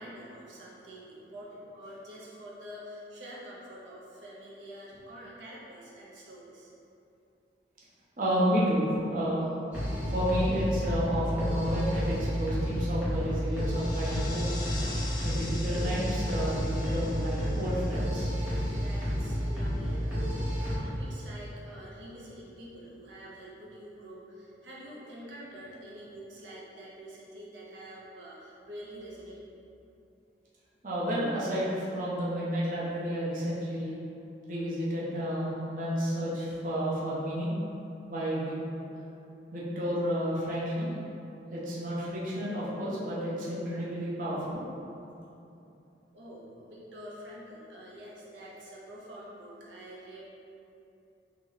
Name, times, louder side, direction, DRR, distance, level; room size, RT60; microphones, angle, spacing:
voice 1, 0.0-6.7 18.7-29.5 46.1-50.2, equal, 85° right, -6 dB, 0.6 m, -46 dB
voice 2, 8.2-9.5 10.1-14.5 15.2-18.3 30.8-34.0 34.5-37.5 38.1-38.5 39.5-40.9 41.5-44.7, equal, 45° right, -8 dB, 0.7 m, -31 dB
sound 1, 9.7-20.8, equal, 5° right, 1.0 m, -31 dB
sound 2, 13.4-19.3, left 2 dB, 25° left, 0.3 m, -44 dB
3.1 x 2.9 x 3.8 m, 2.8 s
head